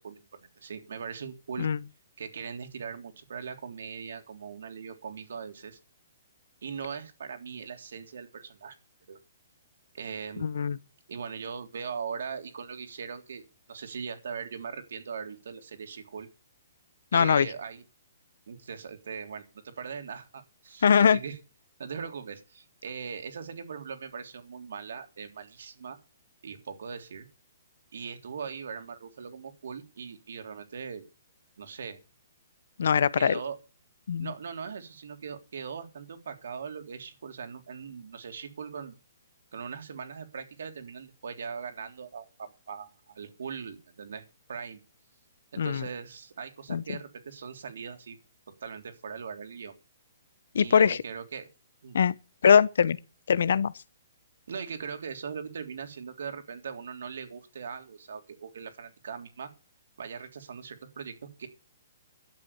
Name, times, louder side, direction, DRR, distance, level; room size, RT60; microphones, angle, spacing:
voice 1, 0.0-1.7 2.2-5.8 6.6-8.8 9.1-9.2 9.9-10.6 11.1-16.3 17.1-17.8 18.5-21.4 21.8-26.0 26.4-27.3 27.9-31.1 31.6-32.0 33.1-33.6 34.2-38.9 39.5-44.8 45.5-48.2 48.6-49.7 50.6-51.5 51.8-52.0 54.5-59.5 60.0-61.5, right 6 dB, 75° right, 3.5 m, -40 dB
voice 2, 10.4-10.8 17.1-17.5 20.8-21.2 32.8-33.4 34.1-34.3 45.6-45.8 46.7-46.8 50.5-51.0 51.9-52.1 52.4-53.0 53.3-53.7, left 7 dB, 70° left, 0.9 m, -22 dB
12.0 x 7.9 x 8.4 m
hypercardioid pair, 150°, 0 cm